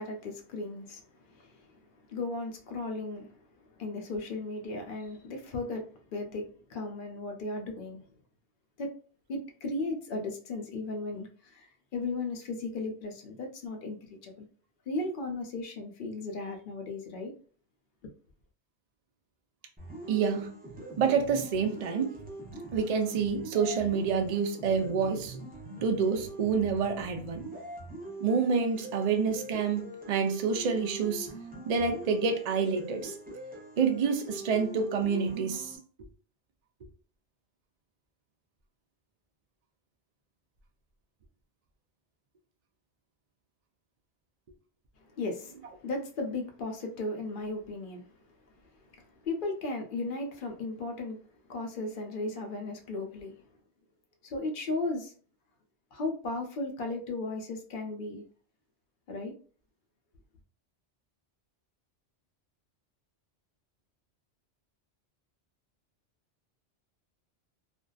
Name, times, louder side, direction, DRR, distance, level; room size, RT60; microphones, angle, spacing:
voice 1, 0.0-1.8 2.1-8.1 8.8-8.9 9.3-14.5 14.9-17.3 45.1-48.1 49.2-51.2 51.5-53.3 54.2-55.1 55.9-58.3 59.1-59.3, left 2 dB, 60° left, 3 dB, 0.7 m, -36 dB
sound 1, 19.8-35.8, right 1 dB, 10° right, 0.5 m, -43 dB
voice 2, 20.1-20.5 21.0-22.1 22.7-25.4 25.8-27.4 28.2-31.3 31.7-33.1 33.8-35.7, right 5 dB, 60° right, 4 dB, 0.4 m, -28 dB
2.5 x 2.2 x 2.3 m, 0.41 s
omnidirectional pair, 1.2 m